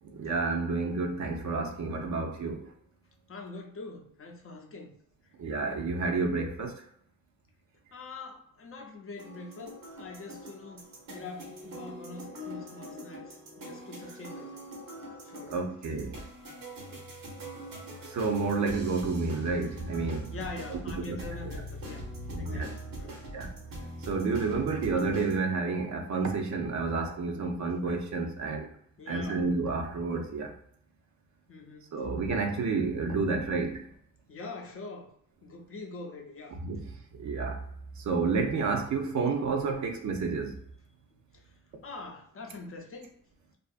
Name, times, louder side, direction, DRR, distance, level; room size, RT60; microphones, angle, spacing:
voice 1, 0.2-2.6 5.4-6.8 15.5-16.1 18.1-20.3 20.7-20.8 21.1-21.2 22.3-22.7 23.3-23.5 24.1-28.7 29.1-30.5 31.9-33.8 36.6-36.8 37.2-37.6 38.1-40.5, right 4 dB, 60° right, 4 dB, 0.5 m, -30 dB
voice 2, 3.3-5.0 7.9-14.6 15.2-16.2 20.3-22.1 22.4-22.7 23.0-23.2 29.0-29.5 31.5-31.9 34.3-35.1 35.4-36.6 41.3-41.4 41.8-43.1, left 3 dB, 40° left, 1 dB, 0.5 m, -44 dB
sound 1, 9.1-25.4, right 1 dB, 80° right, 0.9 m, -42 dB
2.6 x 2.4 x 2.4 m, 0.68 s
wide cardioid pair, 145°, 33 cm